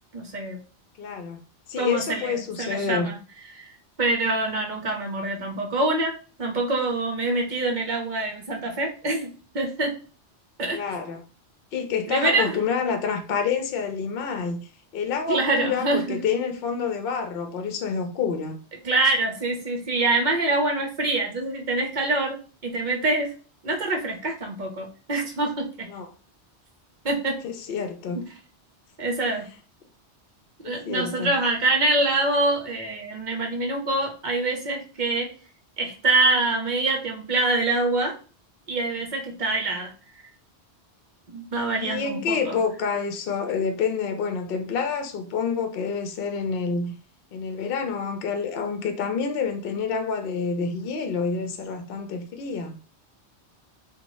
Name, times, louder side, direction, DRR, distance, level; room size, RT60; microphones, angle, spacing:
voice 1, 0.1-0.6 1.8-3.2 3.5-3.7 4.0-9.9 10.6-10.8 12.1-12.6 15.3-16.2 18.8-22.4 22.6-23.3 23.6-25.9 27.0-27.4 28.1-28.2 29.0-29.5 30.6-35.3 35.8-38.2 38.7-39.9 41.3-42.6, right 2 dB, 50° right, 0.7 m, -25 dB
voice 2, 1.0-1.4 1.7-3.1 10.7-11.2 11.7-14.7 14.9-18.6 25.9-26.1 27.4-28.2 30.6-31.3 41.8-46.9 47.3-52.8, left 5 dB, 65° left, 0.7 m, -28 dB
2.7 x 2.2 x 3.0 m
omnidirectional pair, 1.1 m